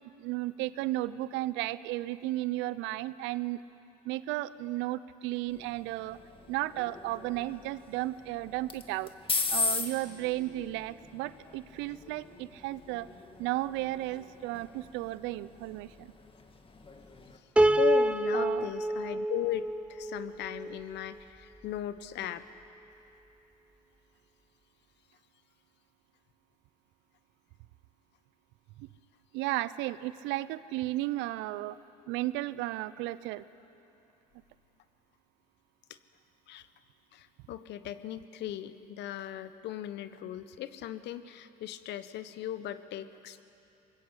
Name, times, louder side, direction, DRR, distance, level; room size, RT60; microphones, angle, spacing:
voice 1, 0.2-3.6 4.0-6.2 6.5-9.1 9.5-13.1 13.4-16.1 18.3-18.7 28.8-28.9 29.3-31.8 32.1-33.4, right 16 dB, 65° right, 16 dB, 0.8 m, -34 dB
sound 1, 5.5-17.4, left 4 dB, 25° left, 2.2 m, -39 dB
Piano, 17.6-20.8, right 1 dB, 5° right, 0.8 m, -27 dB
voice 2, 17.8-22.4 36.5-36.7 37.1-43.4, left 12 dB, 55° left, 13 dB, 1.2 m, -37 dB
24.0 x 21.0 x 8.1 m, 2.8 s
hypercardioid pair, 75°, 21 cm